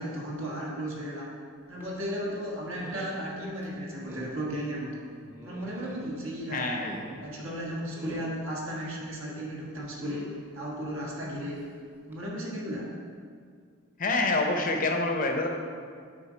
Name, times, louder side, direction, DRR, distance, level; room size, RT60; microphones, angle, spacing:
voice 1, 0.0-1.4 1.7-5.0 5.4-6.8 7.2-11.6 12.1-12.9, equal, 60° right, -4 dB, 1.5 m, -35 dB
sound 1, 1.8-2.0 2.7-3.2 3.6-3.7 4.1-4.3 5.2-6.1 6.6-7.3 7.9-8.4 9.9-10.4 11.5-11.7 12.1-12.2, equal, 10° right, 0.8 m, -44 dB
voice 2, 6.5-6.9 14.0-15.5, left 2 dB, 35° left, 3 dB, 0.6 m, -26 dB
7.3 x 3.9 x 5.0 m, 2.1 s
head